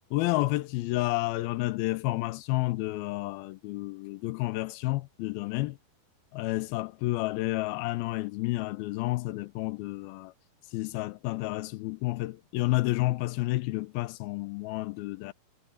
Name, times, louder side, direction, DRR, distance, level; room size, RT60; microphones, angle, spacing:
voice 1, 0.1-5.8 6.3-10.3 10.7-15.3, left 19 dB, 80° left, 2.4 m, -30 dB
omnidirectional pair, 4.4 m